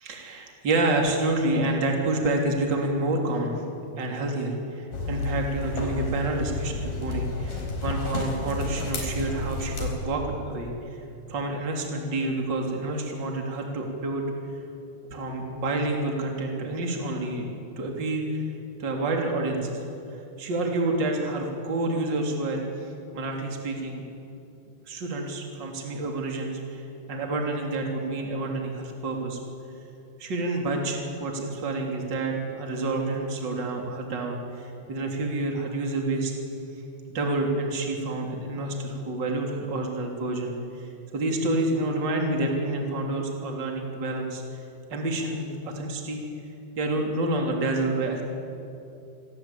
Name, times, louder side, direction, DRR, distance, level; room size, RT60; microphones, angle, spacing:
voice 1, 0.0-3.6 4.0-11.0 11.3-14.2 15.1-17.5 17.8-18.5 18.8-24.0 24.9-29.4 30.2-36.3 37.1-44.4 44.9-46.2 46.8-48.2, right 2 dB, 30° right, 1 dB, 3.4 m, -28 dB
sound 1, 4.9-9.9, left 3 dB, 60° left, 6.0 m, -31 dB
27.5 x 23.0 x 8.7 m, 2.7 s
omnidirectional pair, 4.9 m